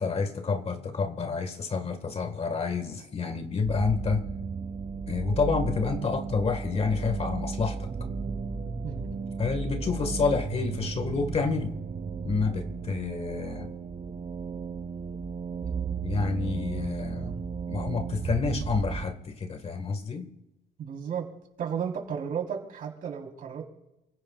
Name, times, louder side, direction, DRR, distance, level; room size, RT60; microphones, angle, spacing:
voice 1, 0.0-4.2 5.1-7.9 9.4-11.7 12.2-13.7 16.0-17.4 17.7-20.3, left 4 dB, 35° left, 9 dB, 1.7 m, -29 dB
sound 1, 3.6-19.0, right 5 dB, 35° right, 2.7 m, -34 dB
voice 2, 20.8-21.3 21.6-23.6, right 7 dB, 55° right, 0 dB, 3.9 m, -34 dB
29.0 x 16.0 x 2.4 m, 0.95 s
cardioid pair, 110°, 17 cm